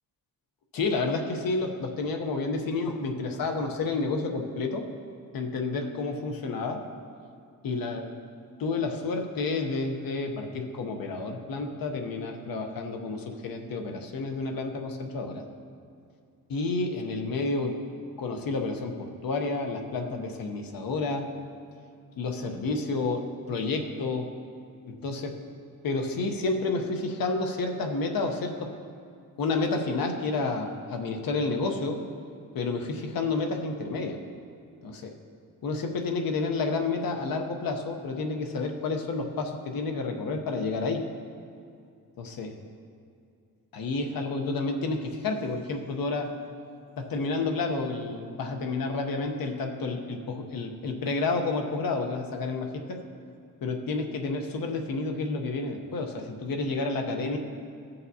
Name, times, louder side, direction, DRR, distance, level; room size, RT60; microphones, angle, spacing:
voice 1, 0.7-4.9 5.3-6.8 7.6-8.1 8.6-15.4 16.5-17.8 18.2-21.4 22.2-24.3 24.9-25.4 25.8-28.7 29.4-32.0 32.5-34.2 34.8-35.1 35.6-41.0 42.2-42.5 43.7-46.3 47.0-53.0 53.6-57.4, left 3 dB, 85° left, 4 dB, 0.9 m, -30 dB
15.0 x 6.9 x 2.7 m, 2.4 s
wide cardioid pair, 155°, 34 cm